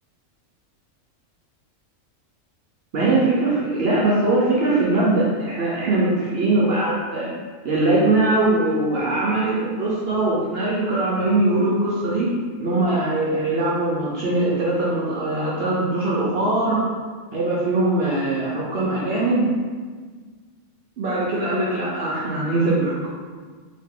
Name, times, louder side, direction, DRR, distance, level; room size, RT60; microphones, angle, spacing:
voice 1, 2.9-7.3 7.6-12.3 12.6-16.8 17.3-19.5 21.0-23.1, right 2 dB, 60° right, -5 dB, 0.7 m, -21 dB
2.9 x 2.8 x 3.6 m, 1.5 s
omnidirectional pair, 1.4 m